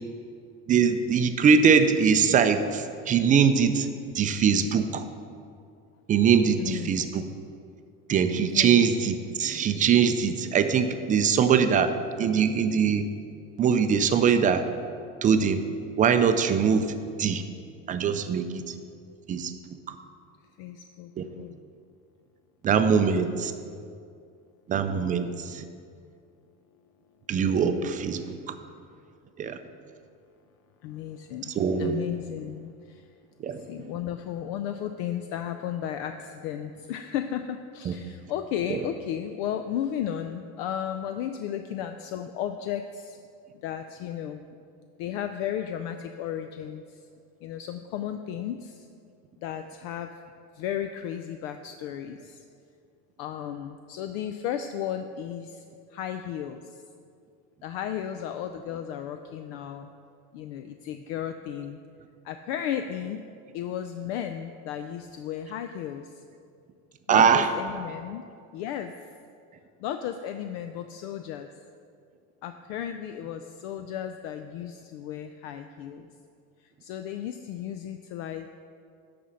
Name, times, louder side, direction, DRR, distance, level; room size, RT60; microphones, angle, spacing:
voice 1, 0.7-3.9 4.1-5.0 6.1-7.2 8.1-13.1 13.6-14.6 15.2-15.6 16.0-17.4 17.9-18.7 19.3-19.5 19.9-20.0 21.2-21.3 22.6-23.5 24.7-25.6 27.3-28.5 29.4-29.6 31.6-31.9 33.4-33.6 37.9-38.0 38.7-38.8 67.1-67.5, right 6 dB, 25° right, 9 dB, 0.4 m, -22 dB
voice 2, 6.6-6.9 8.5-8.8 20.6-21.6 22.9-23.2 28.2-28.4 30.8-31.5 31.8-33.1 33.6-43.2 43.5-44.4 45.0-47.1 47.4-48.9 49.4-50.1 50.5-52.4 53.2-55.6 55.9-56.8 57.6-59.9 60.3-61.8 62.2-63.2 63.5-66.2 67.1-68.2 68.5-68.9 69.8-71.5 72.4-76.1 76.6-78.5, left 10 dB, 70° left, 8 dB, 0.5 m, -34 dB
11.0 x 4.3 x 6.3 m, 2.4 s
supercardioid pair, 135°, 34 cm